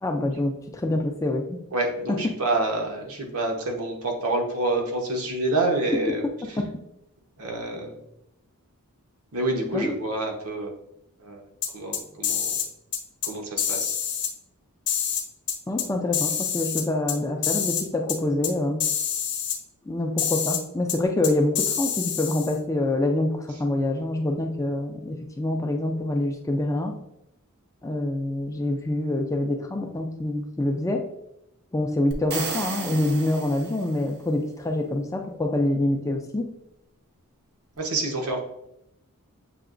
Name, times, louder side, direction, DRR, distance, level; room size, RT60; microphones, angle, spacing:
voice 1, 0.0-1.6 2.1-2.2 6.6-6.7 9.7-9.9 15.7-18.8 19.9-27.0 27.8-31.0 31.7-36.5, left 1 dB, 15° left, 3 dB, 0.3 m, -26 dB
voice 2, 1.7-6.6 7.4-8.0 9.3-10.7 11.2-11.4 11.7-12.6 13.2-14.0 37.8-38.4, right 2 dB, 75° right, 1 dB, 0.9 m, -27 dB
sound 1, 11.6-12.7 12.9-13.3 13.6-14.3 14.9-15.9 16.1-17.2 17.4-17.8 18.1-18.2 18.4-18.5 18.8-19.6 20.2-20.6 20.9-21.0 21.2-22.6, left 8 dB, 50° left, 0.8 m, -27 dB
sound 2, 32.1-34.2, right 4 dB, 45° right, 0.6 m, -34 dB
6.8 x 2.8 x 2.5 m, 0.81 s
head